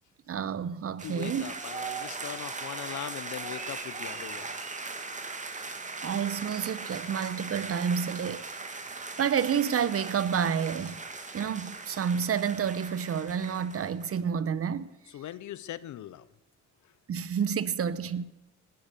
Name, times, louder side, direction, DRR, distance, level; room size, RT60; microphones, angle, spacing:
voice 1, 0.3-1.5 6.0-8.5 9.2-11.0 11.3-14.9 17.1-18.2, right 7 dB, 50° right, 1.1 m, -29 dB
voice 2, 1.0-4.5 15.1-16.3, left 12 dB, 70° left, 0.9 m, -40 dB
sound 1, 1.0-14.2, right 3 dB, 25° right, 2.1 m, -39 dB
19.5 x 10.5 x 6.8 m
cardioid pair, 90°, 30 cm